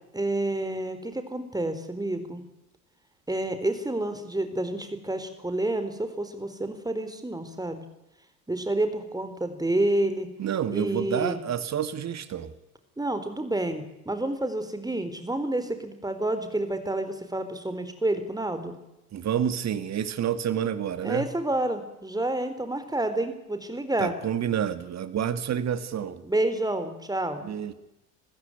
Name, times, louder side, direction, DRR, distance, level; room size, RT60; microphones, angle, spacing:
voice 1, 0.1-2.4 3.3-7.8 8.5-10.3 10.7-11.4 13.0-18.8 21.0-24.1 26.2-27.5, right 1 dB, 10° right, 9 dB, 4.1 m, -29 dB
voice 2, 10.4-12.5 19.1-21.3 24.0-26.2 27.4-27.7, right 9 dB, 35° right, 11 dB, 2.2 m, -29 dB
27.0 x 15.5 x 9.7 m, 0.92 s
figure-of-eight pair, 65°, 44 cm